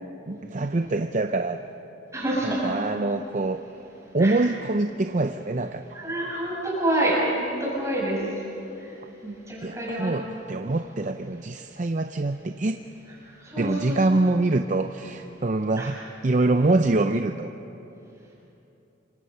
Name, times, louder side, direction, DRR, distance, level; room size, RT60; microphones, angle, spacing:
voice 1, 0.3-1.6 2.4-3.6 4.1-6.0 9.6-12.8 13.6-16.0 16.2-17.5, right 2 dB, 40° right, 7 dB, 0.6 m, -25 dB
voice 2, 2.1-2.8 4.2-4.4 5.9-8.2 8.8-8.9 9.2-10.1 13.4-14.0 15.8-15.9, right 1 dB, 15° right, -6 dB, 7.3 m, -27 dB
28.0 x 25.0 x 5.7 m, 2.9 s
head